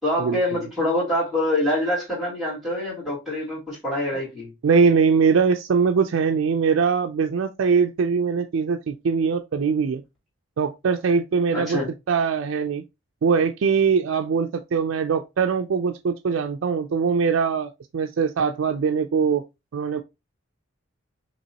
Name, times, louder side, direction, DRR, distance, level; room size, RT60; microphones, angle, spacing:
voice 1, 0.0-4.5 11.5-11.9, left 1 dB, ahead, 2.6 m, -25 dB
voice 2, 4.6-10.0 10.6-11.8 12.1-12.8 13.2-19.4 19.7-20.0, right 5 dB, 80° right, 0.4 m, -22 dB
5.8 x 3.0 x 2.8 m
head